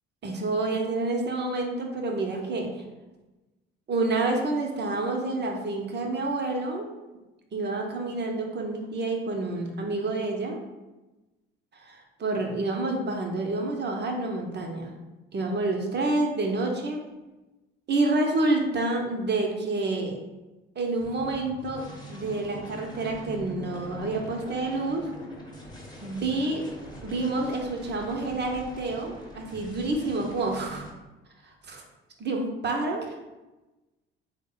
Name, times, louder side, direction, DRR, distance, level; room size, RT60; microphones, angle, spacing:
voice 1, 0.2-2.7 3.9-6.9 7.5-10.6 11.7-14.9 15.3-17.0 17.9-20.1 20.8-25.1 26.0-26.6 27.0-30.9 31.7-31.8 32.2-33.1, right 2 dB, 35° right, 2 dB, 0.7 m, -28 dB
sound 1, 21.0-30.9, equal, 15° left, 0.9 m, -43 dB
3.4 x 2.1 x 3.8 m, 1.1 s
hypercardioid pair, 55°, 29 cm